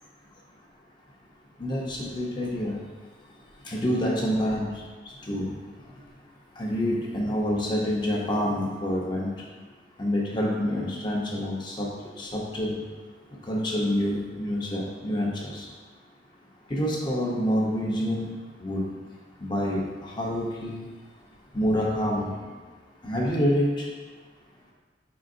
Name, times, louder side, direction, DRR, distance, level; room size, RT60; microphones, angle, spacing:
voice 1, 1.6-2.8 3.7-4.7 5.3-5.5 6.6-9.3 10.0-11.9 12.2-12.8 13.5-15.7 16.7-18.3 18.6-18.9 19.4-20.8 21.5-22.3 23.0-23.8, equal, 25° left, -3 dB, 0.6 m, -27 dB
4.9 x 3.7 x 2.5 m, 1.4 s
head